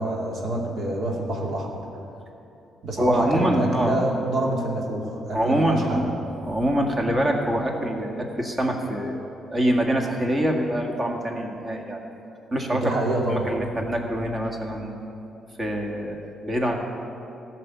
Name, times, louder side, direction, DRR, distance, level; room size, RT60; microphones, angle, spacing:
voice 1, 0.0-1.8 2.8-6.1 12.7-13.5, right 1 dB, 60° right, -1 dB, 2.5 m, -27 dB
voice 2, 3.0-3.9 5.3-6.1 6.4-9.2 9.5-12.0 12.5-12.9 13.3-14.9 15.6-16.8, equal, 30° right, 2 dB, 1.9 m, -24 dB
14.0 x 6.1 x 9.6 m, 2.9 s
cardioid pair, 90°, 0 cm